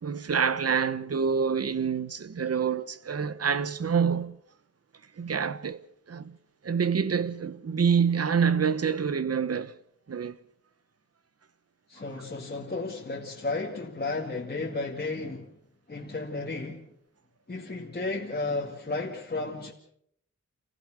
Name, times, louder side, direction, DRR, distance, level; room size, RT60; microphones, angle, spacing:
voice 1, 0.0-4.4 5.2-5.8 6.1-6.4 6.6-9.7 10.1-10.4, right 6 dB, 55° right, 1.0 m, -27 dB
voice 2, 11.9-15.5 15.9-16.9 17.5-19.7, left 3 dB, 35° left, 2.2 m, -33 dB
28.0 x 16.0 x 6.4 m
wide cardioid pair, 120°, 29 cm